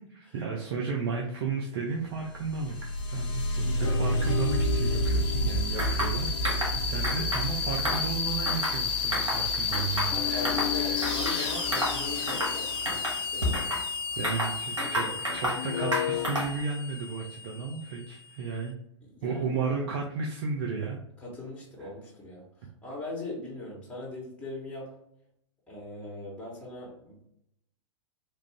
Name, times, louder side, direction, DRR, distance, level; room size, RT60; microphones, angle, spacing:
voice 1, 0.0-11.0 11.3-12.1 14.1-15.0 15.3-18.8 19.2-21.0 21.8-21.9, right 5 dB, 55° right, 0 dB, 0.6 m, -34 dB
sound 1, 2.2-18.5, left 2 dB, 30° left, 0.9 m, -30 dB
sound 2, 3.8-8.4 10.1-14.2 15.6-16.3, left 11 dB, 55° left, 0.5 m, -37 dB
sound 3, 5.8-6.1 6.4-6.7 7.0-7.5 7.8-8.8 9.1-9.4 9.7-10.7 11.0-11.4 11.7-12.0 12.3-12.6 12.9-13.8 14.2-15.6 15.9-16.6, equal, 85° right, 1.2 m, -31 dB
voice 2, 10.0-13.8 14.8-15.2 19.1-19.7 21.2-24.9 25.7-27.3, left 2 dB, 10° left, -5 dB, 1.2 m, -41 dB
3.1 x 2.5 x 3.3 m, 0.75 s
figure-of-eight pair, 100°, 16 cm